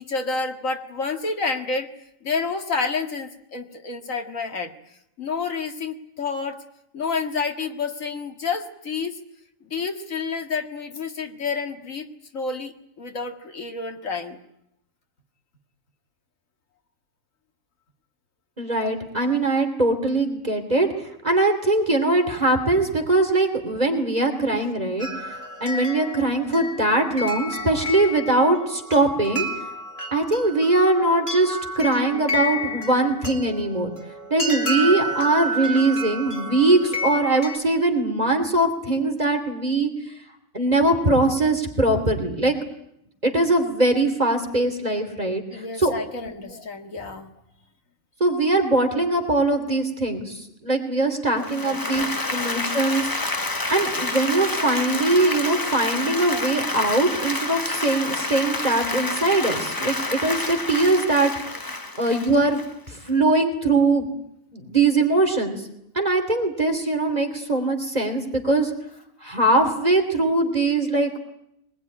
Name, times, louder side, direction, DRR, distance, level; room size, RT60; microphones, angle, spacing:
voice 1, 0.0-1.9 2.2-4.7 5.2-6.6 6.9-9.2 9.7-12.1 12.3-12.7 13.0-14.4 45.5-47.3 51.3-52.1, left 4 dB, 70° left, 5 dB, 2.2 m, -29 dB
voice 2, 18.6-20.9 21.2-25.1 25.6-29.5 30.1-33.9 34.3-39.9 40.5-42.5 43.2-45.9 46.5-46.6 47.0-47.1 48.2-61.6 62.0-62.6 62.9-64.1 64.5-65.6 65.9-68.7 69.2-71.1, right 2 dB, 30° right, 4 dB, 3.0 m, -21 dB
sound 1, 25.0-37.6, equal, 45° left, 3.4 m, -31 dB
Applause, 51.4-63.1, left 2 dB, 15° left, 0.9 m, -28 dB
23.0 x 20.5 x 9.8 m, 0.78 s
omnidirectional pair, 1.5 m